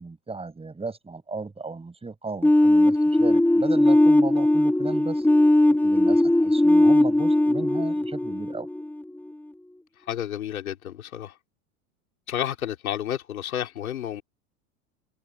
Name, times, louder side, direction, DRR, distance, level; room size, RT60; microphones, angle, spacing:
voice 1, 0.0-5.3 5.7-8.7, right 3 dB, 15° right, 7.2 m, -35 dB
sound 1, 2.4-9.2, left 1 dB, 5° left, 1.8 m, -19 dB
voice 2, 10.1-11.3 12.3-14.2, left 10 dB, 85° left, 3.8 m, -31 dB
hypercardioid pair, 95°, 42 cm